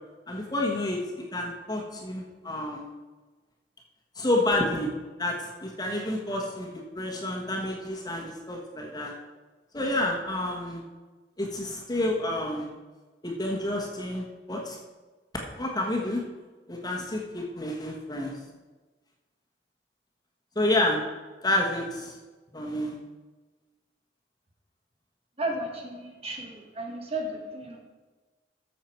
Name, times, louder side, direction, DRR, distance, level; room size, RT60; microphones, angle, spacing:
voice 1, 0.3-2.9 4.1-4.9 5.2-9.1 9.7-10.8 11.4-12.7 13.2-14.8 15.6-16.2 16.7-18.3 20.5-21.0 21.4-22.2 22.5-23.0, left 1 dB, 25° left, -1 dB, 1.4 m, -29 dB
voice 2, 25.4-27.8, right 1 dB, 35° right, 1 dB, 1.9 m, -34 dB
14.0 x 6.7 x 4.5 m, 1.3 s
head